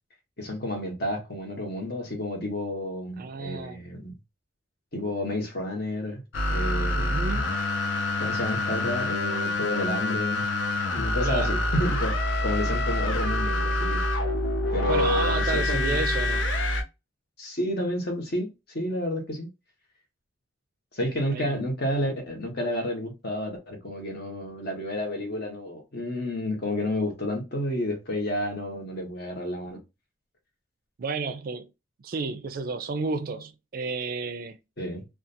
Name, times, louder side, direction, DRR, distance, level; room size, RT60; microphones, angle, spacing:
voice 1, 0.4-4.1 4.9-6.2 6.5-7.2 8.2-10.4 10.9-12.1 12.4-14.0 14.7-16.0 17.4-19.5 20.9-29.8 34.8-35.1, left 1 dB, 55° left, 1.0 m, -30 dB
voice 2, 3.2-3.8 7.0-7.6 11.2-11.6 14.9-16.5 21.3-21.6 31.0-31.7 32.0-34.6, right 4 dB, 50° right, 0.4 m, -32 dB
sound 1, 6.3-16.8, left 1 dB, 85° left, 0.6 m, -26 dB
2.5 x 2.3 x 2.6 m
head